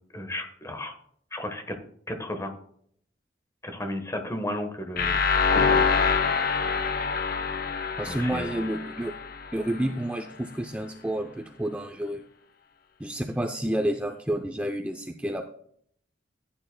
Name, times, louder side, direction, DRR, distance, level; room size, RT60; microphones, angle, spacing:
voice 1, 0.1-0.9 1.3-1.7 2.1-2.6 3.6-5.8 8.1-8.5, left 1 dB, 15° left, 6 dB, 1.2 m, -34 dB
sound 1, 5.0-9.8, left 5 dB, 55° left, 0.7 m, -25 dB
voice 2, 8.0-9.1 9.5-12.2 13.0-15.4, right 1 dB, 10° right, 4 dB, 0.5 m, -30 dB
15.0 x 9.4 x 2.2 m, 0.65 s
head